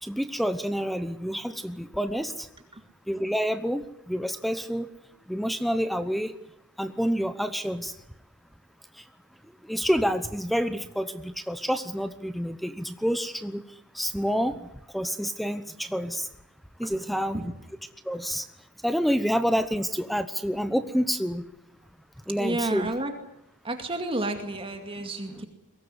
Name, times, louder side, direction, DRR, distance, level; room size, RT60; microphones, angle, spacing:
voice 1, 0.0-2.5 3.1-4.9 5.3-6.3 6.8-7.9 9.7-13.6 13.9-14.6 14.9-16.3 16.8-17.4 18.1-18.4 18.8-21.4 22.3-22.9, equal, ahead, 11 dB, 0.9 m, -28 dB
voice 2, 16.8-17.5 22.3-23.1 23.6-25.5, right 2 dB, 25° right, 5 dB, 2.2 m, -31 dB
23.0 x 18.0 x 9.8 m, 0.85 s
head